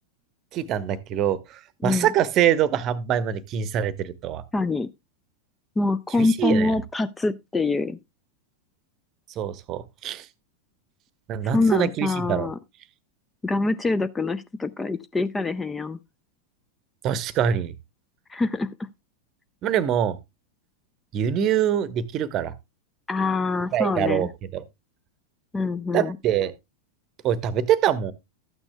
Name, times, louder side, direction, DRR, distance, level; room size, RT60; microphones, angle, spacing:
voice 1, 0.5-4.4 6.2-6.7 9.4-10.3 11.3-12.5 17.0-17.7 19.6-20.2 21.1-22.5 23.7-24.6 25.9-26.5 27.2-28.1, right 9 dB, 35° right, 0.8 m, -24 dB
voice 2, 4.5-4.9 5.8-8.0 11.4-12.6 13.4-16.0 18.3-18.7 23.1-24.3 25.5-26.2, left 3 dB, 10° left, 0.5 m, -25 dB
13.0 x 8.8 x 2.2 m
figure-of-eight pair, 90°, 0 cm